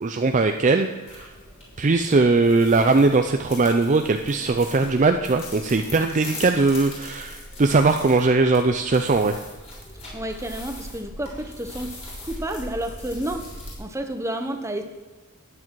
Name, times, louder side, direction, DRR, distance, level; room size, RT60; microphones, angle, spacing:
voice 1, 0.0-1.3 1.8-9.4, right 3 dB, 35° right, 6 dB, 0.5 m, -20 dB
sound 1, 1.1-13.7, left 1 dB, 30° left, 4.2 m, -40 dB
voice 2, 10.1-11.9 12.2-13.5 13.8-14.8, right 1 dB, 15° right, 6 dB, 1.0 m, -30 dB
13.5 x 9.8 x 4.7 m, 1.3 s
head